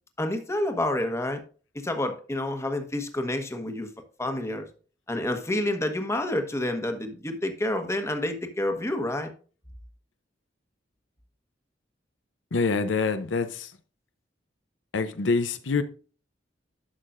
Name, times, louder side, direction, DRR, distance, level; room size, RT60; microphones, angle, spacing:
voice 1, 0.2-1.4 1.8-3.9 4.2-4.7 5.1-9.3, left 1 dB, 15° left, 1.1 m, -28 dB
voice 2, 12.5-13.7 14.9-15.8, left 4 dB, 85° left, 0.7 m, -25 dB
11.5 x 6.6 x 2.5 m
head